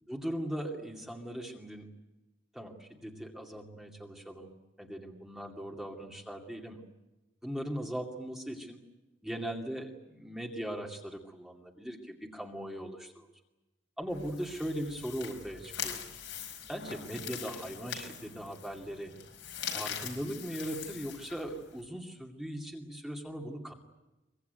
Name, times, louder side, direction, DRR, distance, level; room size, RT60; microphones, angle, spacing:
voice 1, 0.1-1.9 2.5-6.8 7.4-8.8 9.2-13.3 14.0-16.0 16.7-19.1 19.7-23.7, equal, 5° right, 0 dB, 2.4 m, -39 dB
sound 1, 14.1-21.8, left 8 dB, 80° left, 5.3 m, -42 dB
23.5 x 23.0 x 9.4 m, 1.0 s
head